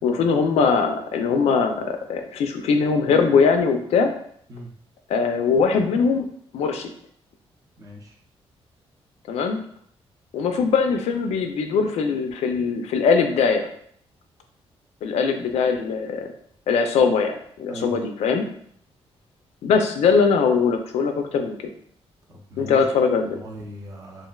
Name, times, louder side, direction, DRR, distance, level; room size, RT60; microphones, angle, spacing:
voice 1, 0.0-4.1 5.1-6.3 6.5-6.9 9.3-9.6 10.3-13.7 15.0-16.3 16.7-18.5 19.6-21.6 22.6-23.4, left 5 dB, 85° left, 5 dB, 0.4 m, -21 dB
voice 2, 7.8-8.1 17.7-17.9 22.3-22.8 23.3-24.3, equal, 35° right, -1 dB, 0.5 m, -39 dB
3.1 x 2.4 x 2.3 m, 0.64 s
wide cardioid pair, 165°, 11 cm